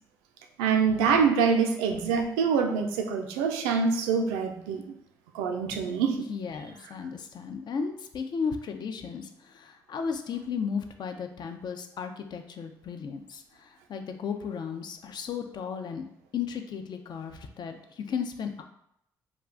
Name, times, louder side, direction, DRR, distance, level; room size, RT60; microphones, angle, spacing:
voice 1, 0.6-4.8 5.3-6.2, right 6 dB, 80° right, 4 dB, 0.4 m, -25 dB
voice 2, 6.3-16.0 16.3-18.6, left 6 dB, 50° left, 5 dB, 0.4 m, -35 dB
2.4 x 2.2 x 3.7 m, 0.77 s
hypercardioid pair, 45°, 9 cm